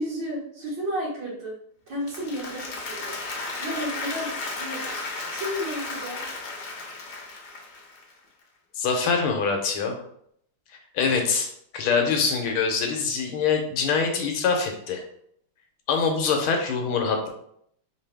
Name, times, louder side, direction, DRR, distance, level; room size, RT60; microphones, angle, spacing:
voice 1, 0.0-1.6 1.9-6.2, equal, 65° right, -4 dB, 2.2 m, -33 dB
Applause, 1.9-8.1, left 3 dB, 55° left, 1.3 m, -34 dB
voice 2, 8.8-10.0 10.9-15.0 15.9-17.3, left 5 dB, 80° left, 3 dB, 1.6 m, -24 dB
4.6 x 3.2 x 3.4 m, 0.69 s
omnidirectional pair, 2.4 m